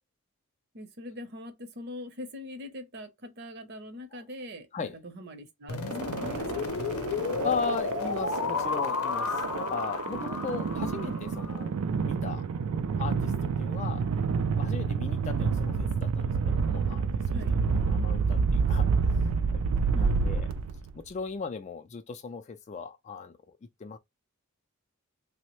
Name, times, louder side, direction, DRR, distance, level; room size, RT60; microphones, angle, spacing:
voice 1, 0.7-7.0 17.3-17.6 19.9-20.4, left 1 dB, 50° right, 0.7 m, -43 dB
sound 1, 5.7-11.6, left 4 dB, 85° left, 0.6 m, -32 dB
sound 2, 5.9-21.0, right 5 dB, 85° right, 0.4 m, -29 dB
voice 2, 7.4-11.7 12.0-12.4 13.0-13.3 13.6-14.1 14.6-17.6 17.8-20.5 20.9-23.4 23.8-24.0, left 5 dB, 30° left, 0.3 m, -37 dB
3.1 x 2.1 x 3.0 m
head